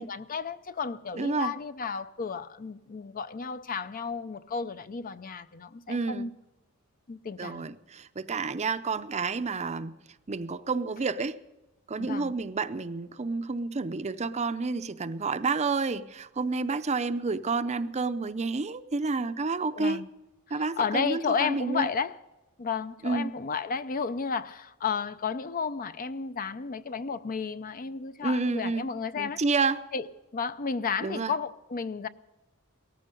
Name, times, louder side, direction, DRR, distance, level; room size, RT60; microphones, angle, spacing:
voice 1, 0.0-6.3 7.1-7.6 12.0-12.3 19.8-20.1 20.5-22.2 22.6-29.4 29.9-30.1 30.3-32.1, left 5 dB, 40° left, 0.5 m, -32 dB
voice 2, 1.2-1.5 5.9-6.3 7.4-10.0 10.3-11.4 11.9-20.0 20.5-21.9 23.0-23.3 28.2-28.9 29.2-29.9 31.0-31.3, right 4 dB, 30° right, 0.6 m, -30 dB
18.0 x 14.5 x 5.3 m
head